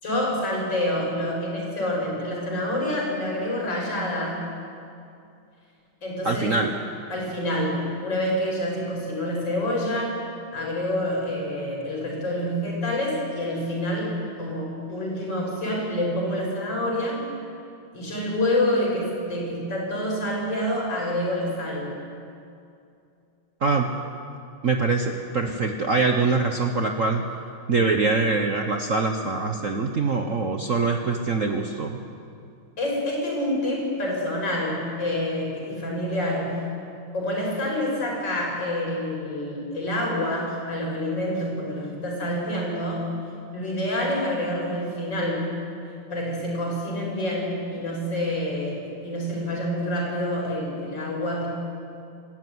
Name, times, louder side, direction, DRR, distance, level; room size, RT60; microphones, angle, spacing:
voice 1, 0.0-4.4 6.0-6.6 7.1-10.2 10.5-17.2 17.9-22.0 32.8-36.6 37.1-43.1 43.5-45.5 46.1-51.5, left 1 dB, 55° left, -1 dB, 6.2 m, -27 dB
voice 2, 6.2-6.7 23.6-23.9 24.6-27.2 27.7-32.0, right 4 dB, 45° right, 3 dB, 1.2 m, -23 dB
26.5 x 14.0 x 9.4 m, 2.5 s
omnidirectional pair, 2.4 m